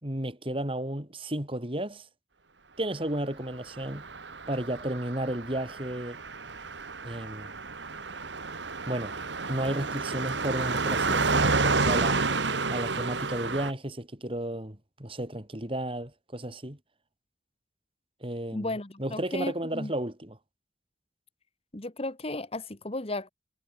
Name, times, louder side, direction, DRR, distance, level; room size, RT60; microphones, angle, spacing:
voice 1, 0.0-2.1 2.8-4.0 4.5-6.2 7.0-7.5 8.9-9.2 9.5-12.2 12.7-16.8 18.2-18.7 19.0-20.4, right 1 dB, 30° right, 3.6 m, -33 dB
Car passing by, 3.8-13.7, right 3 dB, 70° right, 2.0 m, -30 dB
voice 2, 18.5-19.9 21.7-23.3, left 2 dB, 30° left, 1.4 m, -34 dB
head